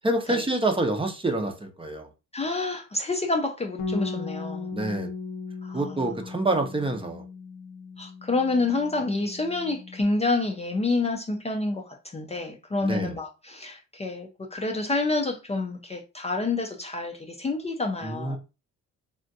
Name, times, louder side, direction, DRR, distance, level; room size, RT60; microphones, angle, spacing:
voice 1, 0.0-2.1 4.7-5.1 5.7-7.2 12.8-13.1 18.0-18.4, right 2 dB, 20° right, 0.7 m, -27 dB
voice 2, 2.3-4.7 5.6-6.1 8.0-18.4, left 3 dB, 20° left, 0.5 m, -28 dB
Bass guitar, 3.8-10.0, left 4 dB, 75° left, 0.7 m, -37 dB
3.4 x 2.5 x 2.6 m
cardioid pair, 90°, 30 cm